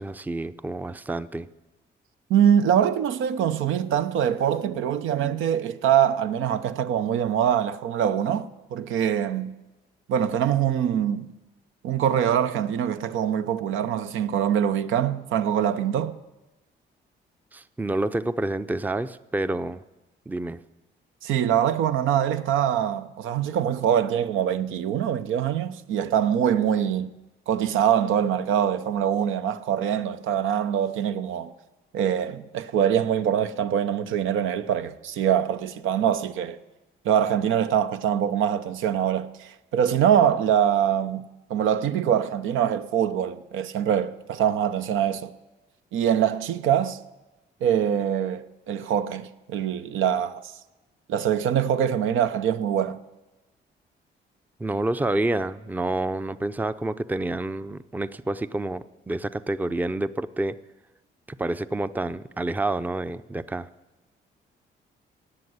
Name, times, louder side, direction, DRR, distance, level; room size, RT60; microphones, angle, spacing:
voice 1, 0.0-1.5 17.5-19.8 20.3-20.6 54.6-60.6 61.3-63.7, right 2 dB, 10° right, 0.5 m, -28 dB
voice 2, 2.3-9.5 10.1-11.3 11.8-16.2 21.2-27.1 27.5-31.5 31.9-36.6 37.0-41.2 41.5-45.3 45.9-47.0 47.6-50.4 51.1-53.0, right 9 dB, 80° right, 0.8 m, -24 dB
17.5 x 6.6 x 9.5 m
cardioid pair, 90°, 20 cm